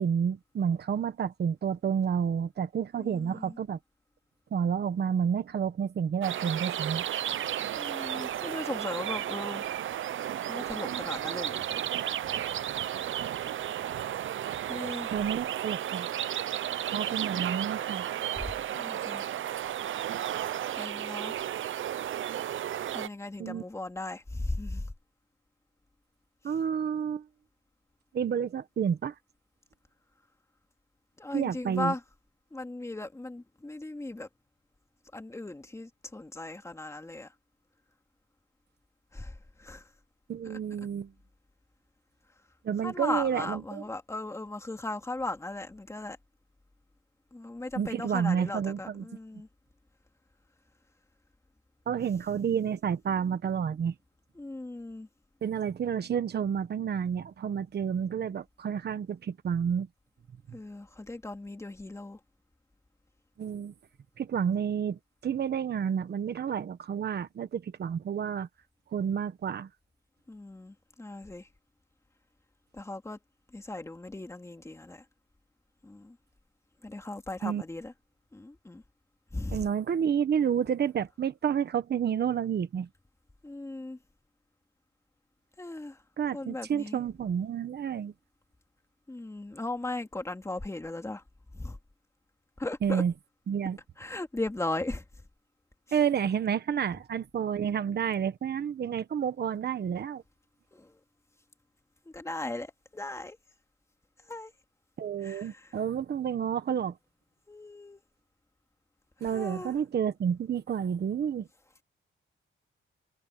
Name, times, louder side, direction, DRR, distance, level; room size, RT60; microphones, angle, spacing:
voice 1, 0.0-3.8 4.5-7.1 15.1-16.1 16.9-18.1 23.4-23.6 26.4-27.3 28.1-29.1 31.3-31.9 40.3-41.1 42.6-43.8 47.7-49.0 51.9-53.9 55.4-59.9 63.4-63.7 64.2-68.5 68.9-69.7 77.4-77.6 79.5-82.9 86.2-88.1 92.8-93.1 93.5-93.8 95.9-100.2 105.0-106.9 109.2-111.5, right 8 dB, 55° right, 1.2 m, -30 dB
voice 2, 3.0-3.6 7.7-9.7 10.5-11.7 14.7-15.1 18.4-18.5 18.7-19.2 20.8-21.3 22.9-24.8 31.2-32.0 32.5-34.3 35.1-37.3 39.1-39.9 42.8-46.2 47.3-49.5 54.4-55.1 60.5-62.2 70.3-71.5 72.7-73.2 73.5-75.0 75.8-76.2 76.8-77.9 78.3-78.8 79.3-79.7 83.4-84.0 85.6-86.0 86.3-87.0 89.1-91.2 91.5-91.8 92.6-93.0 94.0-95.0 100.7-100.9 102.1-103.4 104.3-104.5 105.2-105.7 107.5-108.0 109.2-109.7, left 2 dB, 15° left, 2.7 m, -37 dB
sound 1, 6.2-23.1, right 11 dB, 70° right, 0.7 m, -33 dB
wide cardioid pair, 140°, 21 cm